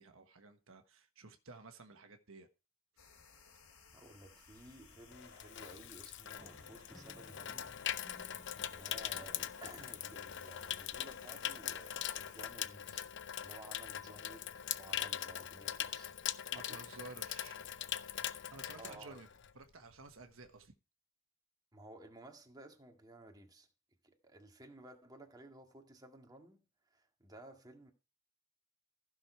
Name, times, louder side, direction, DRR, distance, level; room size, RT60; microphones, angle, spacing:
voice 1, 0.0-2.5 16.5-17.6 18.5-19.3 19.5-20.7, right 3 dB, 65° right, 1.3 m, -53 dB
sound 1, 3.0-12.5, left 5 dB, 80° left, 3.6 m, -61 dB
voice 2, 3.9-7.7 8.7-13.1 13.4-16.1 16.5-16.9 18.8-19.2 21.7-23.7 24.0-27.9, right 1 dB, 20° right, 1.9 m, -55 dB
Water tap faucet / Sink (filling or washing), 4.6-19.6 19.9-20.2, left 10 dB, 55° left, 0.7 m, -42 dB
sound 2, 6.4-12.3, equal, ahead, 0.5 m, -62 dB
15.0 x 6.3 x 4.5 m
head